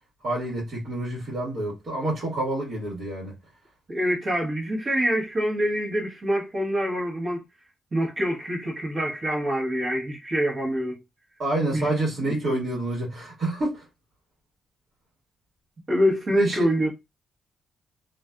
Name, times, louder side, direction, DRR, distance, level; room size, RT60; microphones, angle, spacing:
voice 1, 0.2-3.4 11.4-13.8 16.4-16.7, right 1 dB, 55° right, 1.4 m, -28 dB
voice 2, 3.9-7.4 7.9-11.0 11.7-11.9 12.2-12.7 15.9-16.9, equal, 40° right, 1.1 m, -25 dB
2.5 x 2.4 x 2.2 m
cardioid pair, 90°, 0 cm